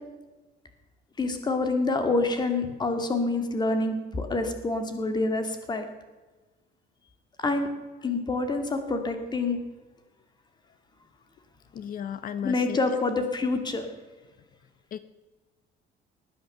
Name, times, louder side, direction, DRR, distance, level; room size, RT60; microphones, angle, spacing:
voice 1, 1.2-5.9 7.4-7.7 8.0-9.6 12.4-13.9, left 3 dB, 20° left, 7 dB, 2.2 m, -27 dB
voice 2, 11.7-12.8 14.9-15.0, left 9 dB, 45° left, 13 dB, 0.8 m, -34 dB
19.5 x 10.0 x 6.8 m, 1.2 s
cardioid pair, 150°, 20 cm